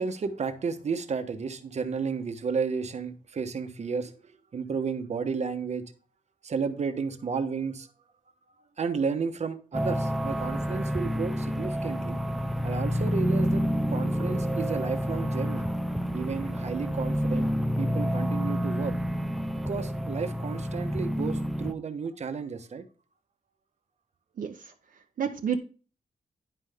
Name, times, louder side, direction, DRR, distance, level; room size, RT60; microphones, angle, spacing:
voice 1, 0.0-4.1 4.5-5.8 6.4-7.9 8.8-12.2 12.6-13.6 13.9-15.7 16.1-17.5 17.8-18.9 19.7-22.8, right 5 dB, 50° right, 8 dB, 1.1 m, -32 dB
sound 1, 9.7-21.7, equal, ahead, 0.5 m, -29 dB
voice 2, 24.4-24.7 25.2-25.6, right 7 dB, 70° right, 3 dB, 0.8 m, -30 dB
10.5 x 5.6 x 3.5 m, 0.36 s
wide cardioid pair, 135°, 15 cm